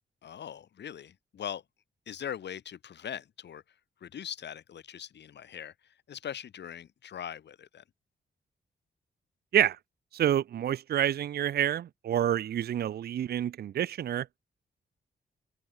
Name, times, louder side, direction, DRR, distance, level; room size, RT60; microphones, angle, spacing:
voice 1, 0.2-1.6 2.1-3.6 4.0-7.8, left 9 dB, 70° left, 2.2 m, -41 dB
voice 2, 10.1-14.3, right 10 dB, 60° right, 0.6 m, -28 dB
open air
wide cardioid pair, 170°, 19 cm